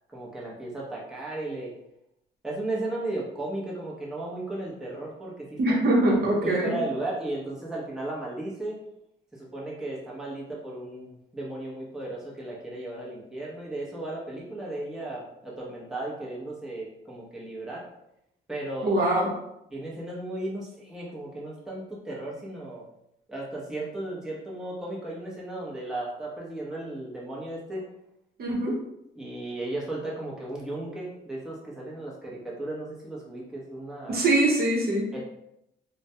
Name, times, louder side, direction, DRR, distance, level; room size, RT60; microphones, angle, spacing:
voice 1, 0.1-1.7 2.4-5.8 6.4-8.8 9.3-17.8 18.5-19.0 19.7-22.8 23.3-27.9 29.2-34.2 35.1-35.2, right 2 dB, 5° right, -5 dB, 0.7 m, -35 dB
voice 2, 5.6-6.8 18.8-19.3 28.4-28.8 34.1-35.1, right 1 dB, 50° right, -3 dB, 0.8 m, -23 dB
2.1 x 2.1 x 2.7 m, 0.82 s
cardioid pair, 90°, 20 cm